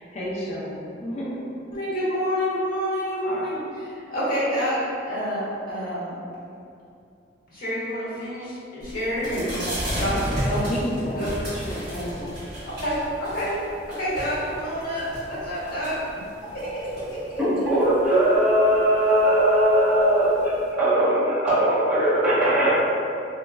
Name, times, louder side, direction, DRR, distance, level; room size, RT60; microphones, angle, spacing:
voice 1, 0.0-1.4 10.4-12.3, equal, 40° left, -5 dB, 0.4 m, -31 dB
voice 2, 1.7-4.8 5.1-6.1 7.5-9.7 10.0-10.7 11.2-11.4 12.8-13.5 13.9-16.0 16.5-16.8 17.1-17.4, equal, 55° left, -9 dB, 1.2 m, -28 dB
sound 1, 8.8-20.7, equal, 60° right, 1.5 m, -34 dB
voice 3, 17.4-22.7, right 1 dB, 5° right, -13 dB, 1.1 m, -20 dB
3.0 x 3.0 x 2.4 m, 2.6 s
head